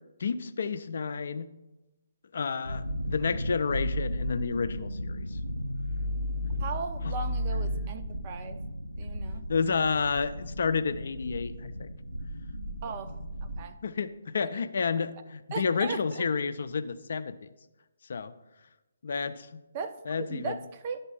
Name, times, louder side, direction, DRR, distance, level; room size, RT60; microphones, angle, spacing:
voice 1, 0.2-1.5 2.3-5.4 7.0-7.1 9.5-11.9 13.8-17.5 18.1-18.3 19.0-19.6 20.1-20.6, left 5 dB, 50° left, 12 dB, 0.4 m, -30 dB
sound 1, 2.6-13.7, equal, 80° right, 0.8 m, -34 dB
voice 2, 6.6-8.6 9.0-9.4 12.8-13.1 13.4-13.8 14.5-14.6 15.5-16.2 19.7-21.0, right 5 dB, 30° right, 8 dB, 0.5 m, -37 dB
11.0 x 3.7 x 5.4 m, 1.0 s
figure-of-eight pair, 140°, 0 cm